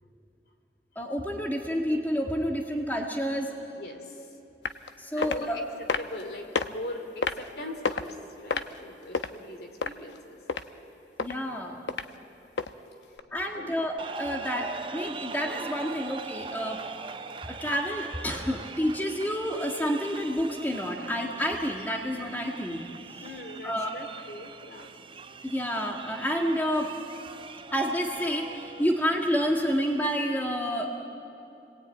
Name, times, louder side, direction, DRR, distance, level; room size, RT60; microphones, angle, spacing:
voice 1, 1.0-3.5 5.0-5.6 11.2-11.8 13.3-16.8 17.5-22.8 23.6-23.9 25.4-26.9 27.7-30.9, equal, 10° left, 1 dB, 1.7 m, -29 dB
voice 2, 3.7-4.2 5.1-5.6 6.0-10.4 11.6-11.7 13.5-13.8 23.2-24.9, left 1 dB, 60° left, 4 dB, 2.9 m, -41 dB
sound 1, 4.7-4.9 5.2-5.4 5.9-6.2 6.6-6.7 7.2-7.5 7.9-8.1 8.5-9.3 9.8-10.2 10.5-10.6 11.2-11.3 11.9-12.0 12.6-12.7 13.2-13.3, left 4 dB, 85° left, 0.9 m, -28 dB
sound 2, 14.0-30.1, right 4 dB, 30° right, 0.6 m, -42 dB
28.5 x 20.5 x 9.1 m, 2.8 s
head